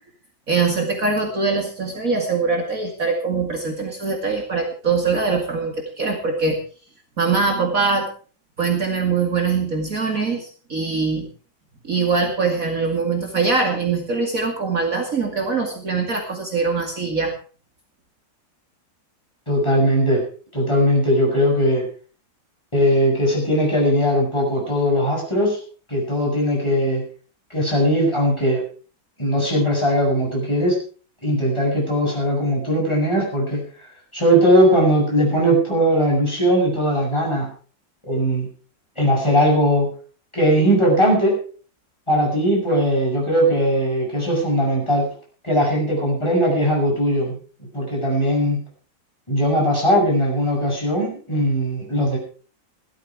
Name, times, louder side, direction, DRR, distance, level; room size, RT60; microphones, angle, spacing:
voice 1, 0.5-6.6 7.2-8.1 8.6-11.3 11.8-17.3, right 4 dB, 50° right, 2 dB, 2.7 m, -22 dB
voice 2, 19.5-20.2 20.5-21.9 22.7-25.6 25.9-27.0 27.5-28.6 29.2-30.8 31.2-37.5 38.1-38.5 39.0-39.9 40.3-41.4 42.1-45.1 45.4-47.3 47.7-48.6 49.3-52.2, equal, 15° left, -2 dB, 7.8 m, -19 dB
17.0 x 12.5 x 4.8 m, 0.40 s
omnidirectional pair, 2.0 m